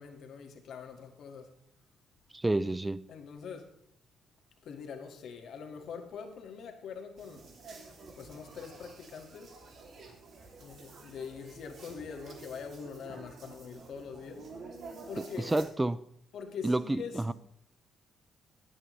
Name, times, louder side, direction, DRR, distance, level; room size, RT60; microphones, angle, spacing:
voice 1, 0.0-1.6 3.1-3.7 4.6-7.5 8.1-9.6 10.6-14.5 15.1-15.6 16.3-17.3, left 6 dB, 70° left, 1.8 m, -44 dB
voice 2, 2.3-3.1 15.5-16.0 16.6-17.3, right 2 dB, 15° right, 0.4 m, -29 dB
sound 1, 7.2-15.7, right 3 dB, 55° right, 2.7 m, -49 dB
23.0 x 8.7 x 3.2 m
cardioid pair, 90°, 0 cm